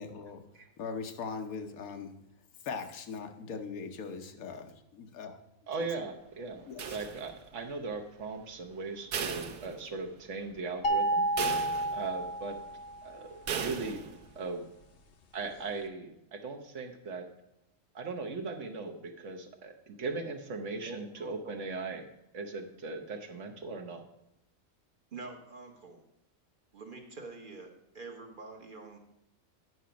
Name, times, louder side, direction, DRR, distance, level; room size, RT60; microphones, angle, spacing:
voice 1, 0.0-0.4 0.8-2.1 2.6-5.4 6.7-7.0, left 5 dB, 90° left, 6 dB, 1.3 m, -40 dB
voice 2, 5.7-11.3 11.9-12.6 13.0-14.0 14.4-14.6 15.3-17.2 17.9-22.1 22.3-24.0, right 3 dB, 60° right, 4 dB, 1.2 m, -38 dB
sound 1, 6.8-7.6 9.1-10.3 10.6-10.7 11.4-12.3 13.5-14.3, right 7 dB, 85° right, 1.3 m, -37 dB
sound 2, 10.8-13.1, right 1 dB, 55° left, 0.7 m, -30 dB
voice 3, 20.9-21.6 25.1-26.0 26.7-29.0, right 3 dB, 40° right, 3 dB, 1.1 m, -46 dB
9.4 x 5.8 x 5.1 m, 0.85 s
omnidirectional pair, 1.5 m